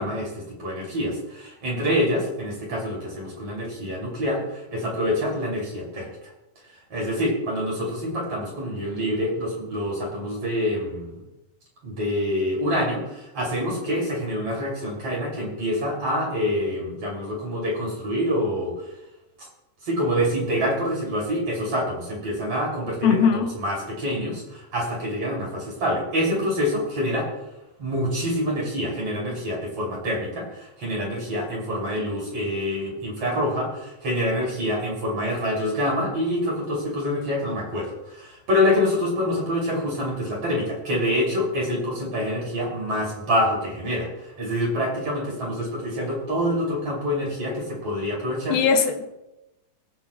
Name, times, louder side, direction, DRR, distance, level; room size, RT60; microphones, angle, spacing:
voice 1, 0.0-6.1 6.9-11.2 11.8-18.7 19.4-19.5 19.8-27.3 27.8-44.1 44.4-48.6, equal, 40° right, -3 dB, 3.9 m, -26 dB
voice 2, 23.0-23.5 48.5-49.1, left 6 dB, 80° left, 6 dB, 2.5 m, -20 dB
23.0 x 8.3 x 2.3 m, 0.96 s
omnidirectional pair, 4.3 m